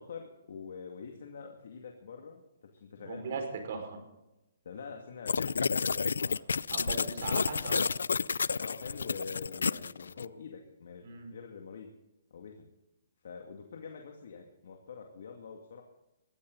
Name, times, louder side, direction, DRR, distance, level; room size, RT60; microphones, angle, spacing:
voice 1, 0.0-2.4 2.7-3.4 4.6-6.8 8.6-11.9 12.3-12.7 13.2-15.8, left 5 dB, 65° left, 2 dB, 2.3 m, -46 dB
voice 2, 3.0-4.0 6.7-7.8 11.0-11.3, right 5 dB, 55° right, 5 dB, 5.2 m, -39 dB
sound 1, 5.3-10.3, left 5 dB, 90° left, 0.4 m, -30 dB
21.5 x 14.5 x 4.0 m, 0.96 s
hypercardioid pair, 155°, 0 cm